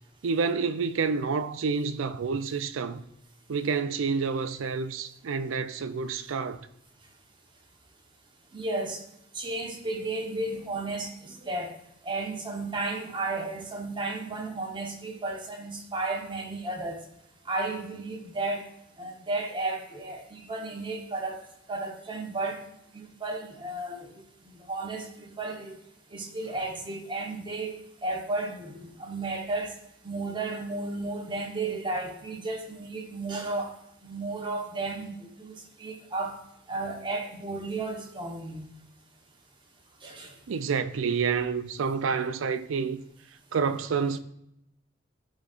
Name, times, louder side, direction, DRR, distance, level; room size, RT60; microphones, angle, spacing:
voice 1, 0.2-3.0 3.5-6.6 40.5-43.0 43.5-44.2, right 5 dB, 85° right, 0.5 m, -28 dB
voice 2, 8.5-9.0 9.3-11.7 12.0-17.0 17.4-18.6 19.0-21.4 21.7-22.6 22.9-24.2 24.7-25.7 26.1-29.7 30.0-33.7 34.0-36.4 36.7-38.7 40.0-40.3, right 2 dB, 25° right, 1.0 m, -33 dB
11.0 x 3.9 x 2.5 m
head